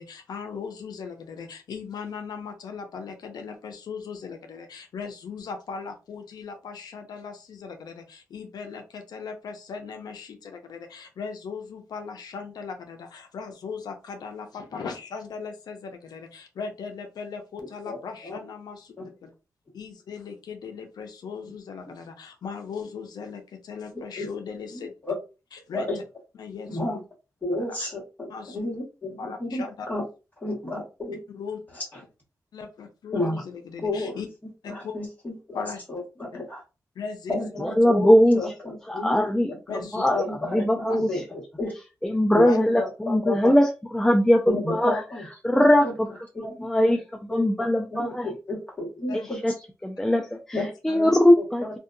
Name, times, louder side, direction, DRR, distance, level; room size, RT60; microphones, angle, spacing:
voice 1, 0.0-19.0 19.2-19.3 19.7-24.9 25.5-25.9 26.4-26.9 27.6-27.8 28.3-28.6 29.2-29.9 31.3-31.6 32.5-34.3 34.6-34.9 35.5-35.8 37.0-37.3 39.7-40.0 40.9-41.0 42.4-42.6 49.1-49.3 50.9-51.2, left 5 dB, 85° left, 5 dB, 0.5 m, -38 dB
voice 2, 24.7-25.2 25.7-26.0 26.7-27.0 27.4-30.0 30.4-31.2 31.7-31.8 33.1-33.4 33.8-34.2 34.7-35.6 35.9-36.6 37.3-39.8 40.1-41.7 42.3-43.5 44.5-45.3 45.5-45.9 46.4-46.5 46.9-47.0 47.3-49.4 50.5-50.7 50.9-51.8, left 2 dB, 25° left, -3 dB, 1.3 m, -31 dB
voice 3, 37.6-38.4 38.9-39.5 39.9-40.2 40.5-41.1 42.0-45.0 45.4-46.1 46.6-47.0 47.3-48.3 49.1-49.5 49.8-50.6 50.8-51.6, left 1 dB, 5° left, 3 dB, 0.3 m, -20 dB
2.6 x 2.2 x 2.5 m, 0.30 s
wide cardioid pair, 100°, 7 cm